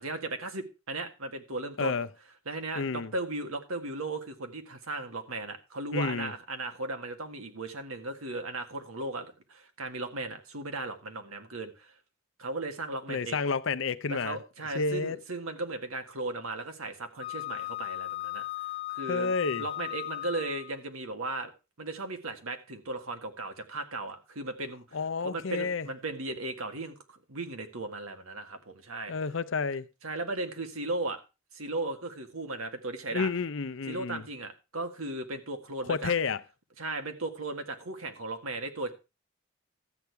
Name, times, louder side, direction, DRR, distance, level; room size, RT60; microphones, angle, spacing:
voice 1, 0.0-2.0 2.5-11.9 12.4-13.4 14.1-18.4 18.9-21.5 21.8-25.0 25.2-29.1 30.0-31.2 31.5-33.3 33.9-36.1 36.8-38.9, right 2 dB, 85° right, 1.8 m, -36 dB
voice 2, 2.8-3.1 5.9-6.3 13.1-14.4 14.7-15.2 19.1-19.7 24.9-25.9 29.1-29.9 33.1-34.2 35.9-36.4, left 4 dB, 65° left, 0.6 m, -30 dB
Wind instrument woodwind instrument, 17.2-20.8, left 16 dB, 25° left, 0.5 m, -37 dB
13.0 x 8.5 x 4.6 m
head